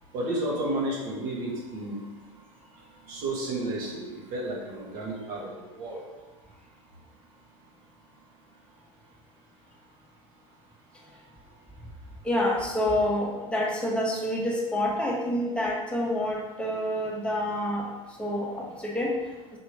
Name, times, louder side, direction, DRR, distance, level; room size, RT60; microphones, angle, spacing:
voice 1, 0.1-2.0 3.1-6.0, right 1 dB, 55° right, -3 dB, 1.4 m, -32 dB
voice 2, 12.2-17.9 18.2-19.1, left 1 dB, 5° left, -3 dB, 1.0 m, -27 dB
4.5 x 2.8 x 3.3 m, 1.2 s
hypercardioid pair, 90°, 18 cm